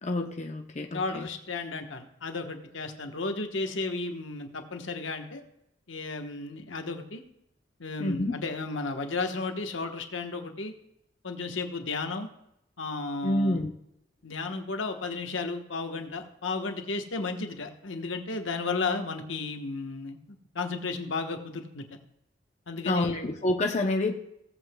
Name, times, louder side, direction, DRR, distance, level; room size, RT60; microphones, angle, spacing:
voice 1, 0.0-1.3 8.0-8.4 13.2-13.7 22.8-24.2, left 1 dB, 35° left, 3 dB, 0.7 m, -28 dB
voice 2, 0.9-5.4 5.9-7.2 7.8-10.7 11.2-12.3 12.8-13.6 14.2-20.2 20.5-22.0 22.7-23.2, left 3 dB, 80° left, 5 dB, 1.2 m, -33 dB
17.5 x 7.9 x 2.3 m, 0.80 s
head